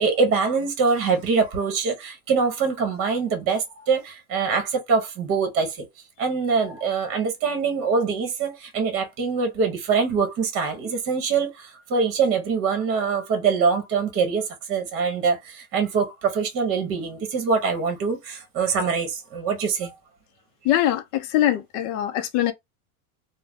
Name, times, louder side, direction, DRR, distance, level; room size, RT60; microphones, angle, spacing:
voice 1, 0.0-5.9 6.2-19.9, right 5 dB, 30° right, 1.0 m, -24 dB
voice 2, 20.6-22.5, left 12 dB, 35° left, 0.5 m, -22 dB
2.5 x 2.1 x 3.4 m
supercardioid pair, 145°, 44 cm